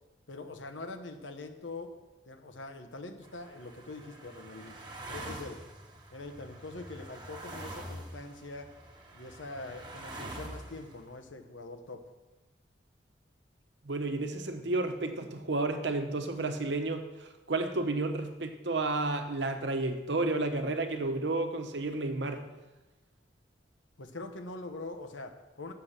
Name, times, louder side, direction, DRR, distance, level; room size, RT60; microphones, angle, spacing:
voice 1, 0.3-1.9 2.3-4.8 5.1-5.6 6.1-8.7 9.1-12.0 24.0-25.7, left 2 dB, 85° left, 6 dB, 1.0 m, -43 dB
sound 1, 3.2-11.1, right 1 dB, 25° right, 1.1 m, -45 dB
voice 2, 13.8-22.5, right 2 dB, 70° right, 7 dB, 0.9 m, -31 dB
6.9 x 6.7 x 7.3 m, 1.1 s
head